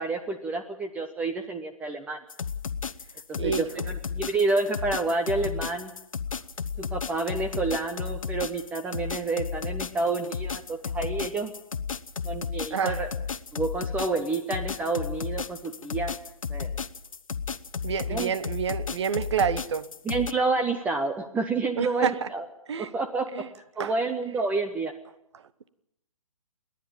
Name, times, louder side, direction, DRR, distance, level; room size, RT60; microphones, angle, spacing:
voice 1, 0.0-2.2 3.3-5.9 6.8-11.5 12.2-13.1 13.5-16.1 16.5-16.7 18.1-18.3 20.1-22.4 22.8-23.3 23.8-24.9, right 3 dB, 10° right, 0.7 m, -29 dB
sound 1, 2.3-20.3, left 6 dB, 70° left, 0.9 m, -33 dB
voice 2, 12.7-13.0 17.8-19.9 21.8-22.3 22.7-22.9 23.3-23.5 23.8-23.9 25.3-25.4, right 7 dB, 55° right, 1.0 m, -28 dB
28.0 x 10.5 x 8.9 m
figure-of-eight pair, 135°, 18 cm